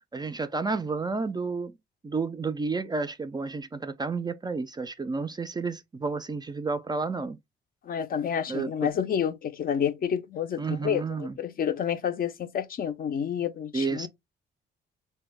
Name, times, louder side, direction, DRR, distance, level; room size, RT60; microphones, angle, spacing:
voice 1, 0.1-1.7 2.0-7.4 8.5-8.9 10.6-11.4 13.7-14.1, right 4 dB, 20° right, 0.3 m, -31 dB
voice 2, 7.8-14.1, left 8 dB, 45° left, 0.5 m, -29 dB
3.0 x 2.2 x 3.3 m
cardioid pair, 90°, 20 cm